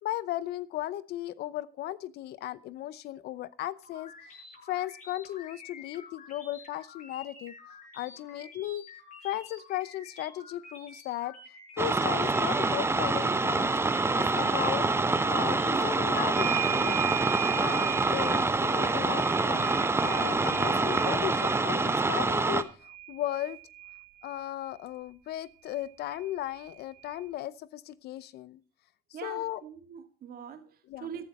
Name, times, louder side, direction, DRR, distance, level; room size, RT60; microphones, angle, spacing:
voice 1, 0.0-4.1 4.7-7.5 7.9-8.9 9.2-11.3 11.8-13.7 14.1-14.9 15.2-17.0 17.5-19.8 20.0-23.6 24.2-28.6 29.2-29.6 30.9-31.1, left 14 dB, 75° left, 0.7 m, -36 dB
sound 1, 3.8-16.8, left 4 dB, 50° left, 7.7 m, -50 dB
sound 2, 11.8-22.6, right 3 dB, 15° right, 0.9 m, -26 dB
sound 3, 16.3-24.5 25.7-25.8 26.1-27.2, right 15 dB, 80° right, 2.1 m, -38 dB
voice 2, 29.1-31.3, right 8 dB, 60° right, 2.1 m, -43 dB
14.0 x 11.5 x 4.2 m
cardioid pair, 110°, 17 cm